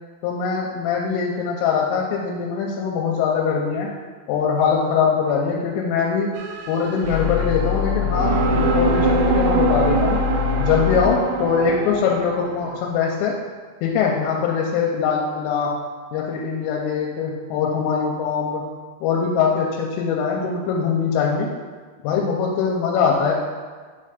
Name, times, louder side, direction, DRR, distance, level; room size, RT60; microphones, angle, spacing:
voice 1, 0.2-3.9 4.3-6.3 6.7-10.2 10.6-13.4 13.8-15.7 16.1-18.7 19.0-21.5 22.0-23.3, left 6 dB, 85° left, -2 dB, 3.2 m, -22 dB
sound 1, 6.3-7.5 8.1-12.8, right 3 dB, 90° right, 3.2 m, -23 dB
sound 2, 7.0-11.1, left 7 dB, 70° right, 2.3 m, -24 dB
9.8 x 3.3 x 5.1 m, 1.5 s
omnidirectional pair, 5.8 m